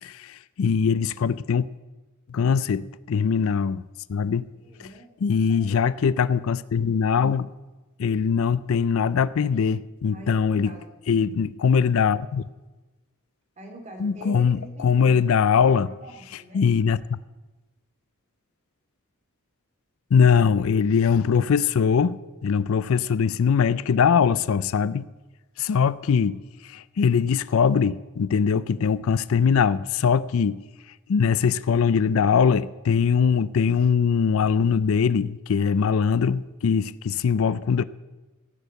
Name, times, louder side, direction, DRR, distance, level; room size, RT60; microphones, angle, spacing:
voice 1, 0.0-1.7 2.3-3.8 4.1-4.5 4.8-4.9 5.2-7.5 8.0-10.7 11.1-12.4 14.0-15.9 16.5-17.2 20.1-25.1 25.6-30.6 31.1-37.8, left 6 dB, 65° left, 17 dB, 0.4 m, -22 dB
voice 2, 4.5-6.1 10.1-10.9 13.6-16.6, right 1 dB, 35° right, 2 dB, 2.5 m, -45 dB
17.0 x 6.4 x 7.9 m, 1.2 s
head